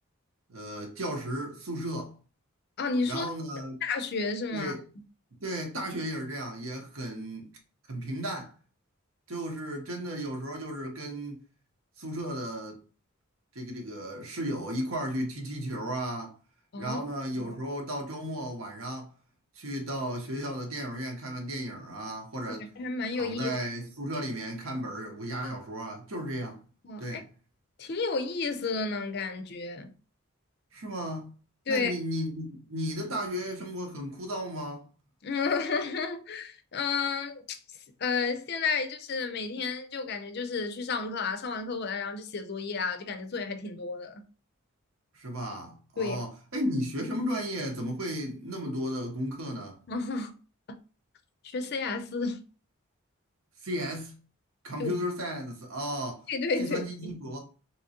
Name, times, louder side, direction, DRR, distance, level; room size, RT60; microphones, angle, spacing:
voice 1, 0.5-2.1 3.1-3.8 4.5-4.8 5.4-7.6 7.9-8.5 9.3-11.5 12.0-12.8 13.5-16.4 16.8-19.1 19.5-22.7 23.2-26.6 27.0-27.3 30.7-31.3 31.7-34.9 45.1-49.8 53.6-54.1 54.6-56.2 56.6-57.4, equal, 70° right, 1.0 m, -34 dB
voice 2, 2.8-3.3 3.8-4.7 16.7-17.0 17.3-17.6 22.5-23.6 26.8-27.2 27.8-29.9 31.7-31.9 35.2-44.2 46.0-46.2 49.9-50.3 51.4-52.4 54.8-54.9 56.3-57.2, left 4 dB, 45° left, 0.4 m, -32 dB
3.5 x 3.0 x 2.8 m
head